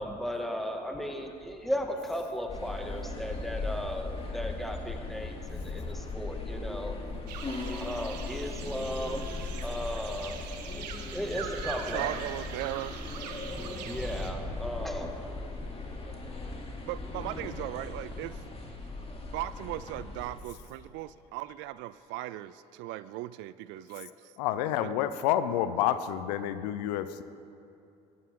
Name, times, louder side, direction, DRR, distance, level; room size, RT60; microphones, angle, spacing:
voice 1, 0.0-7.0 7.8-9.3 9.6-10.4 11.1-12.1 13.4-15.5, equal, ahead, 3 dB, 2.0 m, -36 dB
sound 1, 2.5-20.4, left 3 dB, 30° left, 2.8 m, -38 dB
sound 2, 7.3-14.3, right 7 dB, 85° right, 1.1 m, -42 dB
sound 3, 7.9-20.3, right 3 dB, 20° right, 2.7 m, -53 dB
voice 2, 11.9-13.0 16.8-18.4 19.2-24.3 24.8-24.9, right 16 dB, 65° right, 16 dB, 0.4 m, -38 dB
voice 3, 24.4-27.2, left 11 dB, 80° left, 13 dB, 0.6 m, -29 dB
18.5 x 14.0 x 3.8 m, 2.6 s
hypercardioid pair, 60°, 21 cm